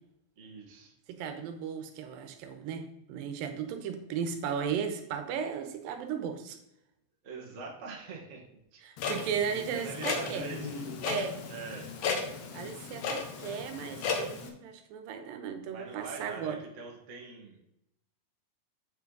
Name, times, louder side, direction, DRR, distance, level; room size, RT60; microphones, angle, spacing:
voice 1, 0.4-0.9 7.2-8.4 8.7-8.8 9.1-10.9 11.5-11.9 15.7-17.7, right 4 dB, 70° right, 0 dB, 0.7 m, -44 dB
voice 2, 1.1-6.6 8.8-10.5 11.0-11.4 12.5-16.6, right 7 dB, 90° right, 7 dB, 2.6 m, -35 dB
Clock, 9.0-14.5, left 5 dB, 70° left, 1.6 m, -35 dB
7.9 x 5.9 x 3.9 m, 0.81 s
omnidirectional pair, 4.0 m